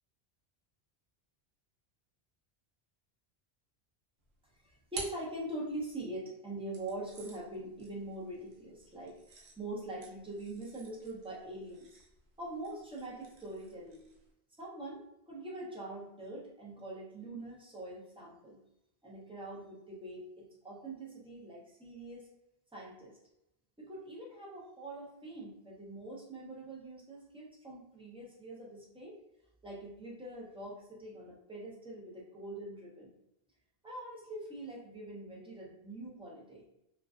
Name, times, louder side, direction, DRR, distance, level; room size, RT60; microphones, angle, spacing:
sound 1, 4.2-6.0 6.7-14.3, right 4 dB, 80° right, 0.9 m, -51 dB
voice 1, 4.6-12.0 12.4-14.1 14.6-18.6 19.0-22.3 22.7-23.2 23.8-29.2 29.6-33.1 33.8-36.6, right 1 dB, 10° right, -5 dB, 0.4 m, -44 dB
2.4 x 2.2 x 2.3 m, 0.82 s
omnidirectional pair, 1.1 m